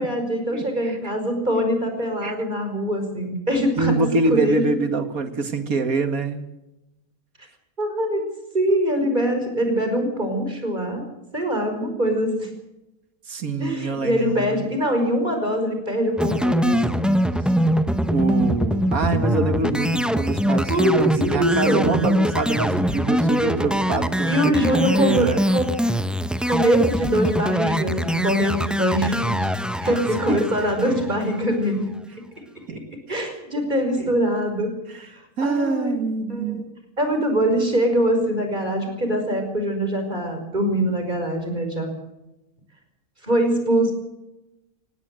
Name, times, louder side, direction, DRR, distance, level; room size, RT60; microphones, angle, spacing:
voice 1, 0.0-4.0 4.3-4.6 7.8-8.2 8.5-11.0 11.3-12.5 13.6-17.1 19.2-19.7 20.7-21.9 24.2-25.7 26.4-29.5 29.8-31.9 33.1-34.7 35.1-35.9 36.3-36.6 37.0-41.9 43.2-43.9, equal, 30° right, 5 dB, 5.5 m, -23 dB
voice 2, 0.5-1.0 2.2-2.3 3.8-6.5 13.3-14.7 18.1-25.4 29.0-29.2 29.8-29.9 30.3-30.4 32.7-32.8 34.0-34.1 34.9-35.1 35.4-36.6, right 3 dB, 70° right, 8 dB, 2.4 m, -25 dB
sound 1, 16.2-31.5, equal, ahead, 0.4 m, -23 dB
19.5 x 17.0 x 7.9 m, 0.93 s
omnidirectional pair, 1.6 m